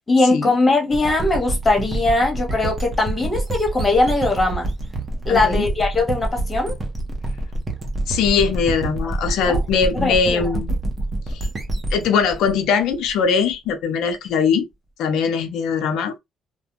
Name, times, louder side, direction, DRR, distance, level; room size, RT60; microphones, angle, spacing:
voice 1, 0.1-4.7 5.3-6.8 9.4-9.6 9.9-10.4, left 2 dB, 25° left, 1.2 m, -20 dB
sound 1, 0.9-13.5, right 2 dB, 30° right, 0.8 m, -27 dB
voice 2, 5.3-5.7 8.1-10.8 11.9-14.6 15.0-16.2, left 6 dB, 85° left, 0.5 m, -21 dB
2.4 x 2.2 x 2.9 m
cardioid pair, 90°, 0 cm